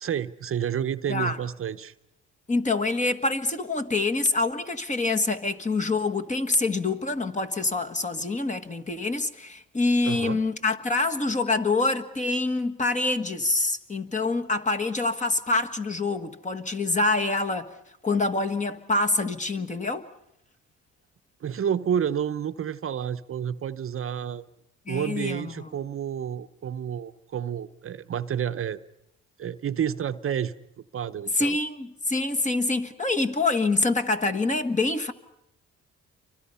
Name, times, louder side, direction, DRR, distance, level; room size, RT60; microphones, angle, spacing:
voice 1, 0.0-1.9 10.0-10.4 21.4-24.5 24.9-28.8 29.4-30.5 30.9-31.6, right 9 dB, 45° right, 0.8 m, -30 dB
voice 2, 2.5-17.7 18.0-20.1 24.9-25.7 31.3-35.1, left 3 dB, 25° left, 1.6 m, -26 dB
29.0 x 24.5 x 5.6 m
cardioid pair, 90°, 30 cm